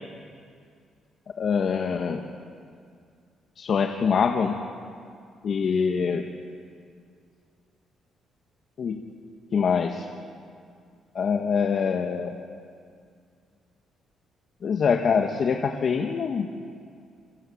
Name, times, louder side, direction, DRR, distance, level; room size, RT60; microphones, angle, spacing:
voice 1, 1.4-2.2 3.6-4.6 5.4-6.2 8.8-9.0 9.5-10.1 11.2-12.3 14.6-16.5, left 6 dB, 55° left, 3 dB, 1.9 m, -24 dB
28.5 x 22.5 x 8.9 m, 2.3 s
cardioid pair, 90°, 0 cm